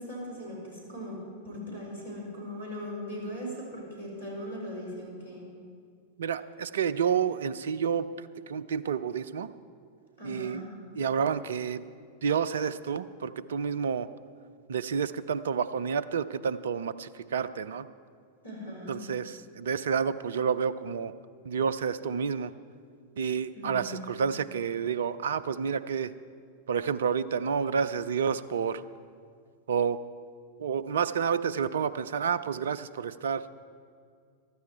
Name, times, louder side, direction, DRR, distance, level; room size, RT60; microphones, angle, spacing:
voice 1, 0.0-5.5 10.2-10.7 18.4-19.0 23.5-24.3, equal, 75° left, -2 dB, 4.4 m, -39 dB
voice 2, 6.2-9.5 10.2-10.6 11.0-11.8 12.2-14.1 14.7-17.9 18.9-21.1 21.4-22.5 23.2-26.1 26.7-28.8 29.7-30.0 30.6-33.4, right 6 dB, 65° right, 16 dB, 0.4 m, -29 dB
15.0 x 12.5 x 4.5 m, 2.2 s
figure-of-eight pair, 90°, 0 cm